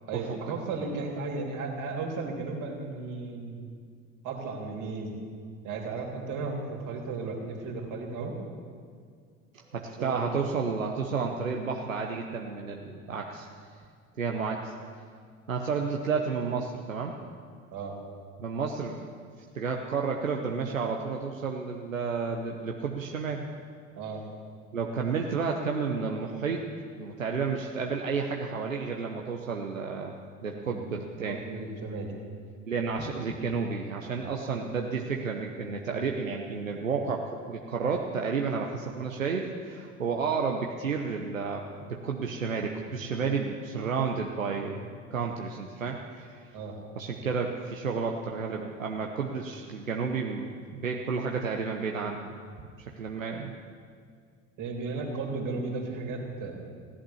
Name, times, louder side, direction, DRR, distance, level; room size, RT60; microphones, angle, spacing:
voice 1, 0.1-3.7 4.2-5.2 5.6-8.4 10.0-10.2 17.7-18.0 24.0-24.2 30.5-30.8 31.2-32.1 46.5-46.7 54.6-56.6, right 3 dB, 55° right, 0 dB, 3.4 m, -35 dB
voice 2, 9.5-13.5 14.2-14.7 15.5-17.1 18.4-19.1 19.5-23.4 24.7-26.6 27.0-30.1 30.4-31.4 32.7-46.5 47.0-52.3 52.9-53.5, right 5 dB, 90° right, 1 dB, 0.9 m, -31 dB
16.5 x 11.5 x 7.1 m, 2.1 s
figure-of-eight pair, 65°, 38 cm